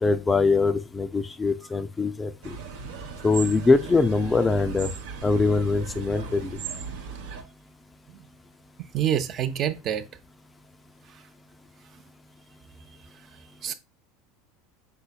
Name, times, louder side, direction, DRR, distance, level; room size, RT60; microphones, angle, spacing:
voice 1, 0.0-2.6 3.2-4.9 5.2-6.5, left 3 dB, 15° left, 0.3 m, -23 dB
sound 1, 2.4-7.4, right 5 dB, 85° right, 0.9 m, -37 dB
voice 2, 8.8-10.0 13.6-13.7, right 10 dB, 45° right, 0.5 m, -27 dB
5.5 x 3.9 x 2.2 m
supercardioid pair, 110°, 0 cm